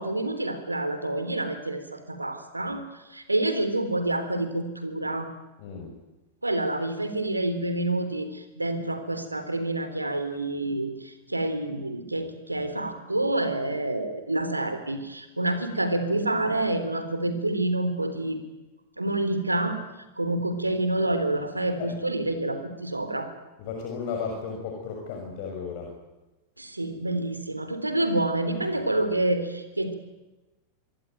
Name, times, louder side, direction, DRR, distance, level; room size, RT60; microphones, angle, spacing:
voice 1, 0.0-5.3 6.4-18.4 19.0-19.8 20.2-23.3 26.6-29.9, right 1 dB, 85° right, 9 dB, 3.6 m, -28 dB
voice 2, 5.6-5.9 21.8-21.9 23.6-25.9, left 5 dB, 50° left, 1 dB, 6.5 m, -34 dB
26.0 x 23.5 x 9.2 m, 1.1 s
figure-of-eight pair, 90°, 0 cm